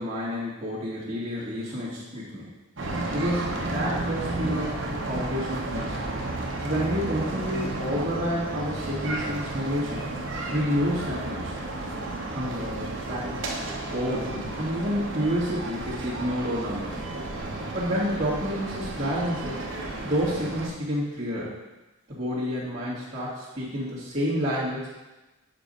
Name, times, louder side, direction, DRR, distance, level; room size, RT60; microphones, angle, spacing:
voice 1, 0.0-2.5 3.1-6.0 6.6-10.1 10.5-11.5 12.3-13.5 13.9-17.0 17.7-19.6 20.0-21.5 22.1-24.9, equal, 35° right, -13 dB, 1.7 m, -29 dB
sound 1, 2.8-20.7, right 2 dB, 60° right, 0.9 m, -32 dB
7.1 x 4.2 x 5.2 m, 1.1 s
head